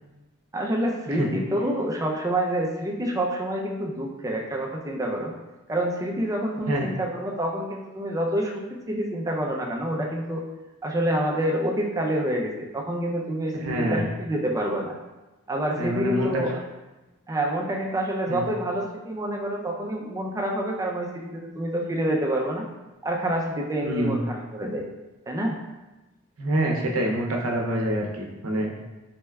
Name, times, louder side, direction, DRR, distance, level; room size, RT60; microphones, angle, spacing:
voice 1, 0.5-5.3 5.7-10.4 10.8-14.9 15.5-16.6 17.3-22.6 23.0-24.9 25.3-25.6, right 1 dB, 15° right, -1 dB, 0.4 m, -27 dB
voice 2, 13.5-14.1 15.8-16.3 18.3-18.5 23.8-24.2 26.4-28.7, right 1 dB, 75° right, 0 dB, 0.6 m, -26 dB
4.2 x 3.2 x 2.2 m, 1.1 s
head